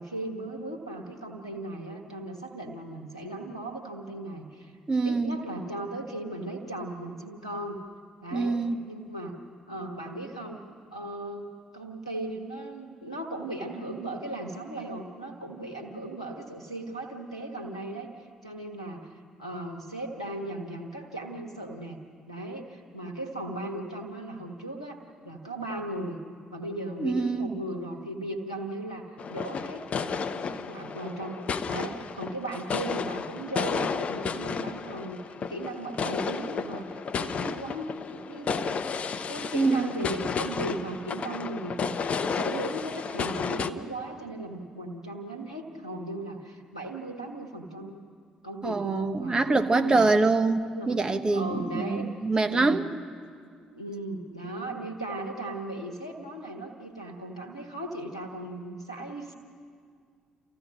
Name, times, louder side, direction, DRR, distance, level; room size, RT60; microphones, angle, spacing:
voice 1, 0.0-4.8 5.0-7.8 8.2-8.6 8.9-9.4 9.7-10.6 10.9-11.5 11.7-19.1 19.4-22.0 22.3-26.2 26.5-31.4 31.7-39.0 39.3-48.0 48.4-50.0 50.7-50.9 51.3-52.1 52.5-52.8 53.7-59.3, right 1 dB, 90° left, 3 dB, 1.4 m, -37 dB
voice 2, 4.9-5.4 8.3-8.8 27.0-27.5 39.5-39.9 48.6-52.9, right 3 dB, 25° right, 7 dB, 1.1 m, -25 dB
sound 1, 29.2-43.7, left 5 dB, 40° left, 0.8 m, -32 dB
29.0 x 15.0 x 6.3 m, 2.1 s
figure-of-eight pair, 45°, 3 cm